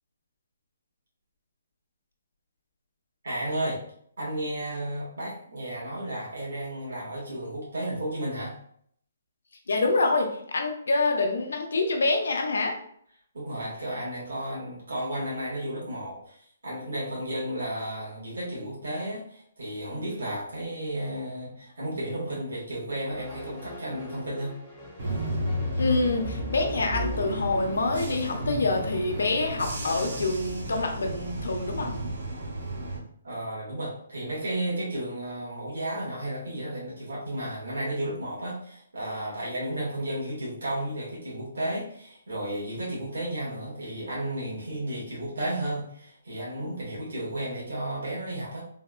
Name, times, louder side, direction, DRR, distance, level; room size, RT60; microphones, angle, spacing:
voice 1, 3.2-3.8 4.2-8.6 13.3-24.6 33.2-48.6, right 1 dB, 85° right, -6 dB, 1.4 m, -33 dB
voice 2, 9.7-12.7 25.8-31.9, left 3 dB, 90° left, 3 dB, 0.6 m, -26 dB
sound 1, 23.1-30.3, equal, 10° left, 0.4 m, -44 dB
Bus / Engine, 25.0-33.0, equal, 55° right, 1.0 m, -32 dB
3.4 x 2.1 x 2.3 m, 0.64 s
hypercardioid pair, 175°, 0 cm